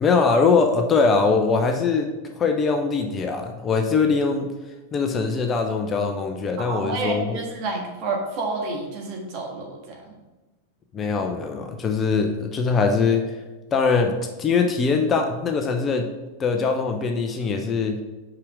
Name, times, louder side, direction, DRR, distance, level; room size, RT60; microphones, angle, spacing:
voice 1, 0.0-2.1 2.4-4.5 4.9-7.4 10.9-13.4 13.7-16.0 16.4-18.0, left 4 dB, 25° left, 4 dB, 0.7 m, -22 dB
voice 2, 6.6-10.1, right 3 dB, 40° right, 0 dB, 1.7 m, -29 dB
5.8 x 5.0 x 6.0 m, 1.1 s
figure-of-eight pair, 90°, 0 cm